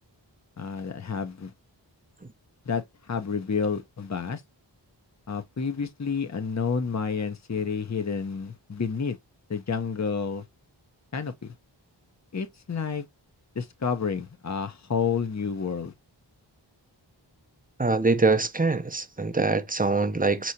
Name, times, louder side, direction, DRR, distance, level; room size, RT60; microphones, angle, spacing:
voice 1, 0.6-1.5 2.7-4.4 5.3-9.2 9.5-10.4 11.1-11.5 12.3-13.0 13.5-15.9, left 5 dB, 35° left, 0.8 m, -30 dB
voice 2, 17.8-20.5, right 3 dB, 20° right, 0.6 m, -24 dB
4.7 x 3.0 x 2.7 m
wide cardioid pair, 45°, 46 cm